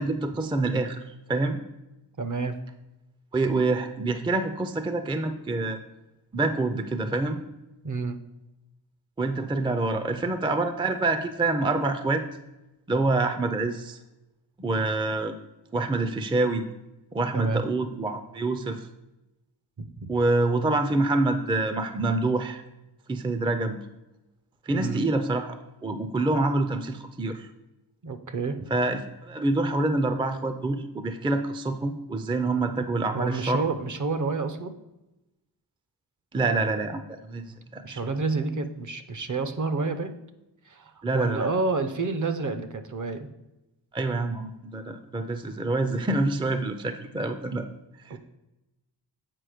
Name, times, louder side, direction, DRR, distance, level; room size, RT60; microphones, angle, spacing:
voice 1, 0.0-1.6 3.3-5.8 6.3-7.4 9.2-12.2 12.9-14.0 14.6-15.4 15.7-16.6 17.1-18.9 20.1-22.6 23.1-23.8 24.6-27.5 28.7-33.7 36.3-37.4 37.7-38.1 41.0-41.5 43.9-47.7 48.0-48.2, right 2 dB, 10° right, 8 dB, 0.4 m, -26 dB
voice 2, 2.2-2.6 7.8-8.2 17.3-17.6 19.8-20.1 24.7-25.0 28.0-28.6 33.1-34.7 37.8-40.1 40.7-43.3 48.1-48.2, right 3 dB, 45° right, 9 dB, 0.7 m, -29 dB
7.7 x 4.9 x 4.9 m, 0.98 s
wide cardioid pair, 115°, 43 cm